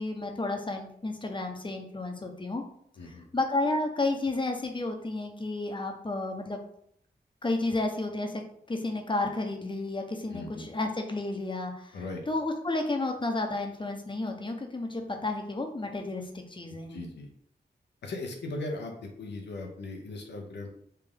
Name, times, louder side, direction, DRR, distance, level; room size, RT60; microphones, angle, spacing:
voice 1, 0.0-2.6 3.3-6.6 7.4-8.3 8.7-12.0 12.3-17.0, left 2 dB, 30° left, 4 dB, 0.7 m, -31 dB
voice 2, 3.0-3.3 10.3-10.7 11.9-12.2 16.7-17.3 18.0-20.7, left 2 dB, 85° left, 2 dB, 0.7 m, -38 dB
3.4 x 2.5 x 3.7 m, 0.68 s
cardioid pair, 50°, 17 cm